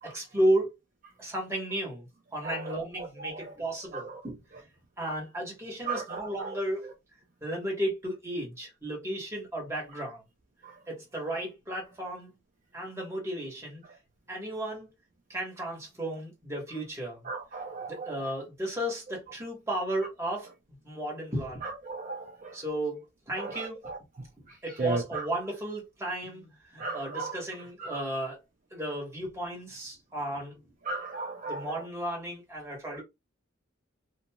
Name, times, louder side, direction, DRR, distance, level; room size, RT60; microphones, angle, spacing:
voice 1, 0.0-0.7 1.2-2.0 2.3-4.4 5.0-6.9 7.4-10.2 10.9-12.3 12.7-13.8 14.3-14.9 15.3-17.3 17.9-20.5 20.8-21.7 22.5-23.9 24.6-28.4 28.7-30.6 31.4-33.0, right 1 dB, 15° right, 1.2 m, -33 dB
voice 2, 2.4-3.5 3.9-4.2 5.8-6.6 10.6-10.8 17.3-18.3 21.6-22.5 23.4-24.0 24.8-25.2 26.8-27.4 27.8-28.0 30.8-31.6, right 3 dB, 40° right, 0.5 m, -36 dB
2.8 x 2.6 x 2.2 m
head